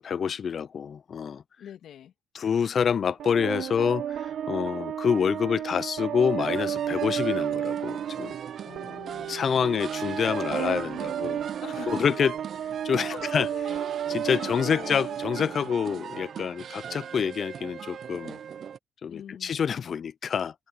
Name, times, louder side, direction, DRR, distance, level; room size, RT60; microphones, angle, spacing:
voice 1, 0.0-1.4 2.3-8.3 9.3-11.4 11.9-12.3 12.8-13.5 14.1-18.4 19.0-20.5, left 7 dB, 50° left, 0.6 m, -27 dB
voice 2, 1.6-2.1 8.6-9.8 11.6-12.3 13.1-13.9 14.2-15.2 19.1-19.6, left 10 dB, 70° left, 2.2 m, -42 dB
sound 1, 3.2-16.2, right 10 dB, 70° right, 1.0 m, -33 dB
sound 2, 6.4-18.8, right 8 dB, 55° right, 0.5 m, -41 dB
cardioid pair, 90°, 0 cm